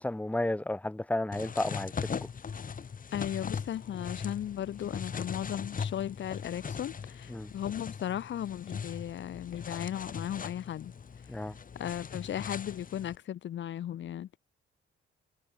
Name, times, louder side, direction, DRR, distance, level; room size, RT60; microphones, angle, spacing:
voice 1, 0.0-1.9 7.3-7.5 11.3-11.5, left 1 dB, 5° left, 1.6 m, -32 dB
sound 1, 1.3-13.2, left 6 dB, 45° left, 6.4 m, -40 dB
voice 2, 3.1-10.9 11.8-14.4, left 11 dB, 70° left, 4.3 m, -36 dB
cardioid pair, 90°, 20 cm